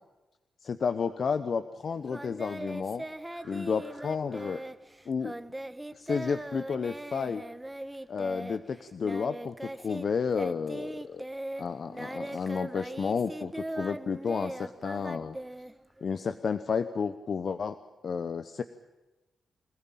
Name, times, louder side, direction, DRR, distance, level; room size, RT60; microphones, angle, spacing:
voice 1, 0.6-3.0 3.4-4.6 5.1-5.3 5.9-7.4 8.1-11.2 11.6-15.4 16.0-17.8 18.0-18.6, left 5 dB, 60° left, 11 dB, 0.9 m, -31 dB
Singing, 2.1-10.1 10.3-16.2, right 1 dB, 15° right, 1.3 m, -40 dB
26.5 x 15.0 x 9.0 m, 1.1 s
cardioid pair, 60°, 0 cm